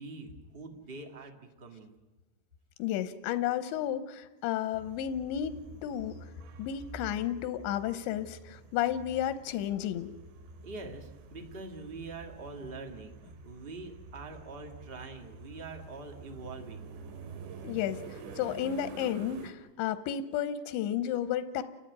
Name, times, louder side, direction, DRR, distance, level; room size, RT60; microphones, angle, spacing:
voice 1, 0.0-1.9 10.6-16.9, right 3 dB, 35° right, 3 dB, 0.8 m, -44 dB
voice 2, 2.8-6.2 6.6-10.1 17.6-21.6, left 10 dB, 90° left, 11 dB, 3.2 m, -32 dB
sound 1, 4.7-19.5, right 4 dB, 85° right, 4.1 m, -48 dB
29.5 x 12.5 x 9.5 m, 1.2 s
omnidirectional pair, 5.0 m